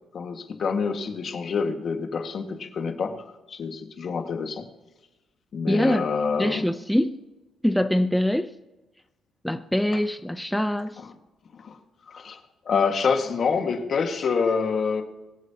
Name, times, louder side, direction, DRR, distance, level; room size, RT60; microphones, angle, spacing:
voice 1, 0.1-4.7 5.5-6.6 11.0-11.1 11.5-11.8 12.1-15.0, left 5 dB, 55° left, 5 dB, 1.7 m, -27 dB
voice 2, 5.7-6.1 6.4-7.2 7.6-8.5 9.4-11.0, left 1 dB, 5° left, 9 dB, 0.5 m, -24 dB
24.0 x 8.2 x 2.9 m, 1.1 s
cardioid pair, 90°, 0 cm